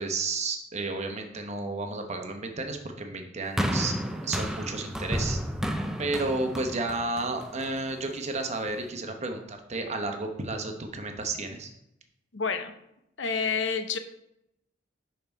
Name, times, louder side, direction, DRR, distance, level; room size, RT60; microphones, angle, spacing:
voice 1, 0.0-3.9 4.2-5.4 6.0-11.7, right 3 dB, 35° right, 4 dB, 0.8 m, -32 dB
sound 1, 3.6-7.9 8.7-8.8, equal, 5° right, 0.4 m, -31 dB
voice 2, 12.3-12.7 13.2-14.0, left 5 dB, 75° left, 8 dB, 0.7 m, -28 dB
5.7 x 5.4 x 4.6 m, 0.83 s
head